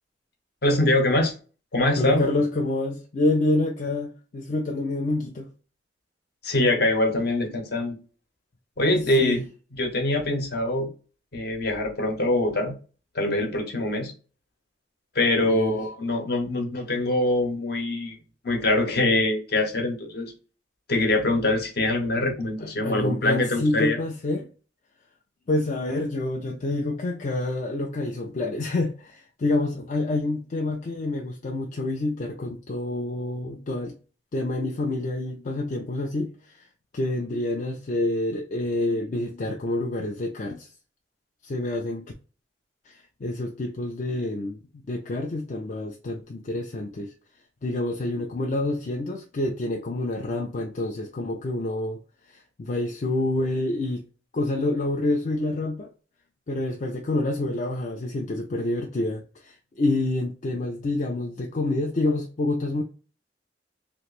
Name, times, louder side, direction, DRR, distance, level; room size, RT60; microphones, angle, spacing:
voice 1, 0.6-1.3 1.7-2.2 6.4-7.9 8.8-9.4 9.8-10.9 11.3-12.7 13.1-14.1 15.1-18.2 18.4-20.3 20.9-24.0, left 2 dB, 60° left, 0.9 m, -23 dB
voice 2, 2.0-5.5 9.2-9.4 15.4-15.8 22.6-24.5 25.5-33.9 34.3-36.7 36.9-40.7 41.4-42.1 42.9-47.1 47.6-52.0 52.3-54.1 54.3-55.9 56.5-62.8, left 2 dB, 45° left, 0.4 m, -27 dB
3.0 x 2.5 x 3.1 m
head